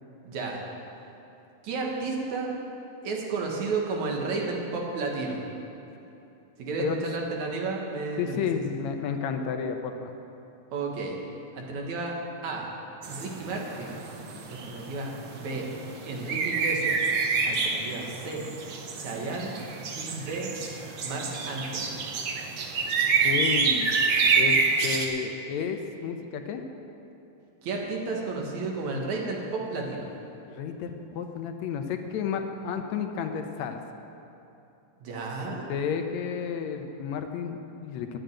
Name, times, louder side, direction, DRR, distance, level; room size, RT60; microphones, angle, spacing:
voice 1, 0.2-0.6 1.6-2.6 3.0-5.4 6.6-8.5 10.7-11.2 11.5-12.1 12.4-12.7 13.1-14.0 14.5-15.7 16.1-17.1 17.5-18.4 19.0-19.6 20.0-20.6 21.0-22.0 27.6-30.1 35.0-35.7, right 3 dB, 80° right, -1 dB, 3.0 m, -32 dB
voice 2, 8.2-10.1 23.2-23.9 24.4-26.6 30.5-33.8 35.7-38.2, left 6 dB, 75° left, 5 dB, 2.1 m, -31 dB
sound 1, 13.0-25.1, right 4 dB, 60° right, 1.3 m, -28 dB
11.0 x 9.2 x 8.8 m, 2.9 s
omnidirectional pair, 3.3 m